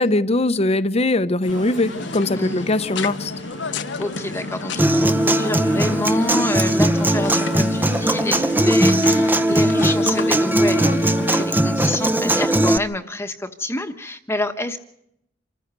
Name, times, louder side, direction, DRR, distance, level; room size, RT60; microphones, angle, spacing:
voice 1, 0.0-3.3, left 2 dB, 35° left, 0.8 m, -21 dB
sound 1, 1.4-11.5, left 3 dB, 80° left, 1.0 m, -32 dB
sound 2, 1.5-9.2, left 1 dB, 40° right, 1.7 m, -39 dB
voice 2, 2.3-2.7 4.0-14.8, left 1 dB, 15° left, 1.2 m, -28 dB
Human voice / Acoustic guitar, 4.8-12.8, right 1 dB, 10° right, 0.7 m, -19 dB
27.0 x 15.0 x 6.8 m
head